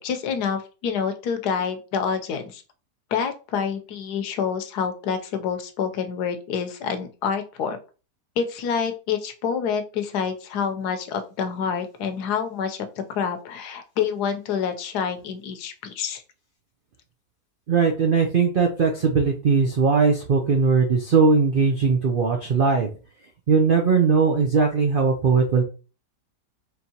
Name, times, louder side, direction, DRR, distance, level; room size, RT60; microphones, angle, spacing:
voice 1, 0.0-2.6 3.1-7.8 8.4-16.2, left 7 dB, 75° left, 7 dB, 1.2 m, -27 dB
voice 2, 17.7-22.9 23.5-25.6, right 5 dB, 80° right, 2 dB, 0.4 m, -19 dB
4.5 x 3.3 x 2.8 m, 0.34 s
omnidirectional pair, 1.8 m